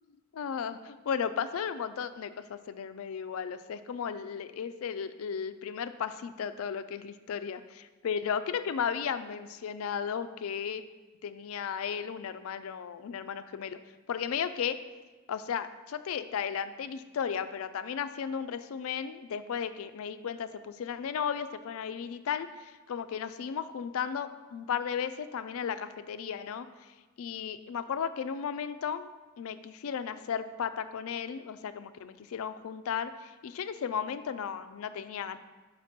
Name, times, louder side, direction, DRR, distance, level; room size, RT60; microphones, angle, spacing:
voice 1, 0.3-7.6 8.0-10.8 11.2-13.8 14.1-14.8 15.3-26.7 27.2-29.1 29.4-35.4, left 7 dB, 75° left, 12 dB, 0.3 m, -35 dB
5.1 x 4.2 x 5.8 m, 1.2 s
head